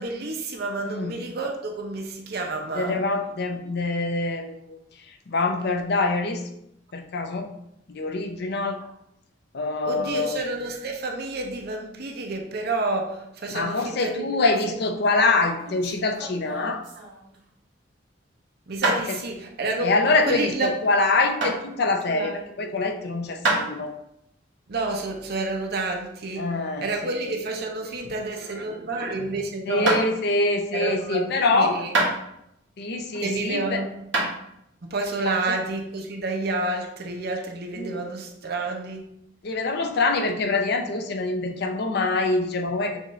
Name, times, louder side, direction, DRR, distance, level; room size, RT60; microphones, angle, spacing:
voice 1, 0.0-3.0 9.8-14.5 18.7-19.9 20.3-20.7 22.1-22.5 24.7-26.5 26.8-30.0 30.7-31.9 33.2-33.9 34.2-34.3 34.8-39.1, right 2 dB, 55° right, 2 dB, 0.7 m, -29 dB
voice 2, 2.7-4.8 5.3-6.4 6.9-7.5 7.9-8.8 9.5-10.4 13.5-16.8 19.1-19.2 19.8-22.3 22.6-23.9 26.4-26.9 29.7-31.8 32.8-33.8 35.5-35.6 37.8-38.0 39.4-43.0, left 3 dB, 60° left, 4 dB, 0.6 m, -24 dB
sound 1, 15.4-17.5 18.8-19.0 21.4-21.6 23.4-23.7 26.9-28.3 28.6-29.0 29.9-30.1 31.9-32.6 33.1-33.6 34.1-34.3, right 2 dB, 75° right, 1.3 m, -26 dB
6.4 x 2.5 x 3.1 m, 0.79 s
head